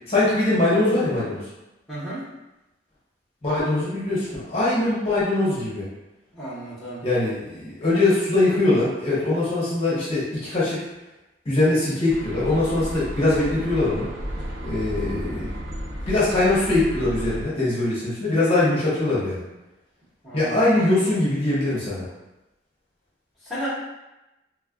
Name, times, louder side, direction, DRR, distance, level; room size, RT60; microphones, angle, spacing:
voice 1, 0.1-1.4 3.4-5.9 7.0-10.8 11.4-14.1 14.6-15.5 16.1-19.4 20.3-22.1, left 2 dB, 30° left, -9 dB, 0.8 m, -22 dB
voice 2, 1.9-2.2 6.3-7.0 20.2-20.6 23.4-23.7, equal, ahead, -10 dB, 1.0 m, -33 dB
sound 1, 12.1-17.4, equal, 65° right, 0.5 m, -33 dB
3.2 x 2.4 x 2.4 m, 0.99 s
head